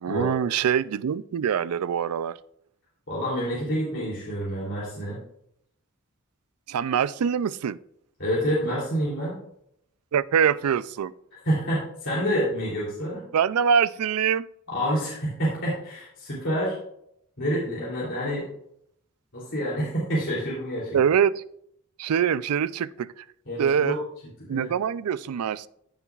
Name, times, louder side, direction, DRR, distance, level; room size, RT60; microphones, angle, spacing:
voice 1, 0.0-2.4 6.7-7.8 10.1-11.1 13.3-14.5 20.9-21.4 22.0-23.2 23.6-24.0 24.5-25.7, right 7 dB, 90° right, 18 dB, 0.4 m, -24 dB
voice 2, 3.1-5.2 8.2-9.3 11.4-13.2 14.7-16.8 17.4-18.4 19.3-21.0 23.5-24.0 24.5-24.7, equal, 60° left, -6 dB, 3.1 m, -28 dB
14.5 x 6.9 x 2.4 m, 0.73 s
head